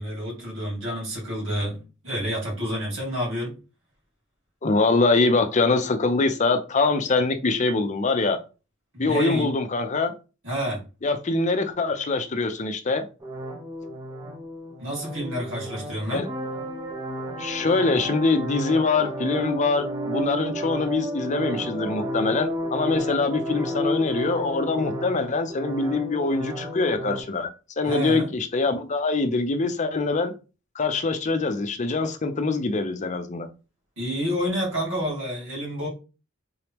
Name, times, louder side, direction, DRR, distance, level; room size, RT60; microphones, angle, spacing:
voice 1, 0.0-3.6 8.9-9.5 10.4-10.8 14.8-16.3 27.8-28.3 34.0-35.9, equal, 65° right, 2.5 m, -29 dB
voice 2, 4.6-8.4 9.0-10.1 11.0-13.1 16.1-16.3 17.4-27.5 27.8-30.3 30.7-33.5, left 3 dB, 35° left, 0.5 m, -24 dB
sound 1, 13.2-27.2, equal, 15° right, 0.8 m, -32 dB
3.9 x 3.4 x 3.0 m
head